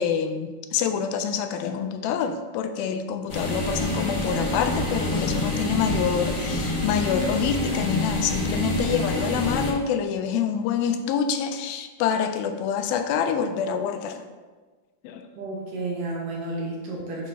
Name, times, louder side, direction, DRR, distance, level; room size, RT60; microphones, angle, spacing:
voice 1, 0.0-14.3 15.0-15.3, left 7 dB, 80° left, 7 dB, 2.2 m, -26 dB
sound 1, 3.3-9.7, left 1 dB, 40° left, 1.9 m, -27 dB
voice 2, 15.4-17.3, right 2 dB, 70° right, -3 dB, 2.3 m, -31 dB
9.8 x 5.8 x 2.7 m, 1.3 s
omnidirectional pair, 4.5 m